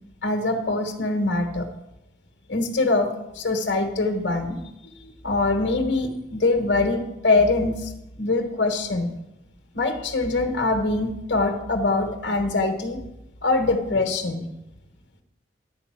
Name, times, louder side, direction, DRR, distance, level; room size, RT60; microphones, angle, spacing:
voice 1, 0.2-1.7 2.5-4.6 5.2-7.9 8.2-9.1 9.7-13.0 13.4-14.4, left 3 dB, 70° left, 4 dB, 1.2 m, -23 dB
11.0 x 5.0 x 7.4 m, 0.90 s
head